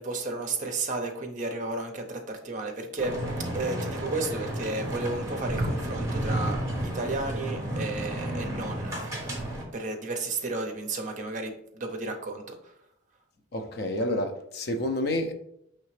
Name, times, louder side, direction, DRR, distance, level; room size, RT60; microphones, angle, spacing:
voice 1, 0.0-3.2 3.5-9.5 9.7-12.7, right 3 dB, 35° right, 0.6 m, -33 dB
sound 1, 3.0-9.6, right 1 dB, 15° right, 0.9 m, -32 dB
voice 2, 13.5-15.3, left 1 dB, 50° left, 0.5 m, -29 dB
4.8 x 3.2 x 3.2 m
head